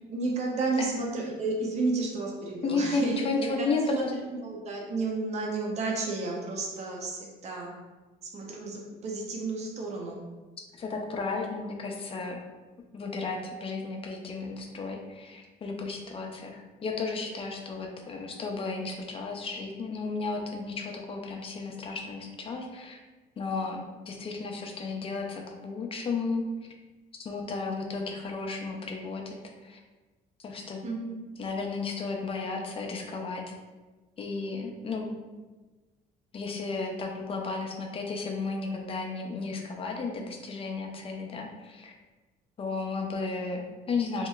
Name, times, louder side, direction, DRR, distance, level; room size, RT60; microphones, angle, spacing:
voice 1, 0.1-4.0 4.4-7.7 8.3-10.2 30.8-31.2, right 3 dB, 40° right, -1 dB, 0.6 m, -32 dB
voice 2, 2.6-4.2 10.8-12.4 12.9-23.0 23.4-26.4 27.2-29.4 29.6-29.8 30.4-30.8 31.4-33.6 34.2-35.1 36.3-41.9 42.6-44.3, left 4 dB, 35° left, 2 dB, 0.5 m, -33 dB
2.9 x 2.8 x 2.3 m, 1.2 s
cardioid pair, 110°, 17 cm